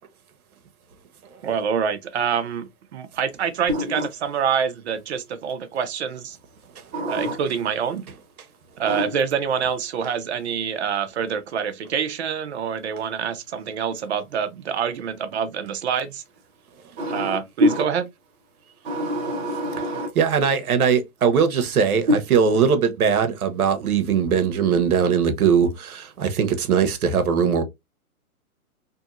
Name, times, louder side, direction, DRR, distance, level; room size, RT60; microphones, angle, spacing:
voice 1, 1.4-6.4 7.1-8.0 8.8-16.2 17.1-18.0, right 7 dB, 50° right, 0.6 m, -26 dB
voice 2, 3.7-4.1 6.9-7.4 8.9-9.1 17.0-17.8 18.8-20.1, equal, 30° right, 1.1 m, -25 dB
voice 3, 20.2-27.6, right 6 dB, 80° right, 0.9 m, -20 dB
2.7 x 2.6 x 2.4 m
hypercardioid pair, 155°, 44 cm